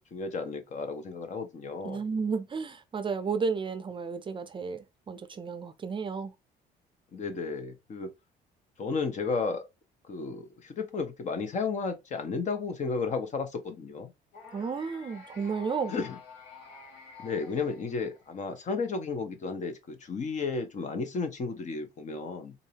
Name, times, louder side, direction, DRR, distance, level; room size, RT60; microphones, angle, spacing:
voice 1, 0.1-2.0 7.1-8.1 8.8-9.6 10.1-14.1 15.9-16.2 17.2-22.5, left 4 dB, 45° left, 1.0 m, -33 dB
voice 2, 1.8-6.3 14.5-15.9, right 5 dB, 30° right, 0.5 m, -32 dB
sound 1, 14.3-18.5, left 5 dB, 75° left, 1.8 m, -48 dB
4.0 x 2.7 x 2.9 m
cardioid pair, 110°, 17 cm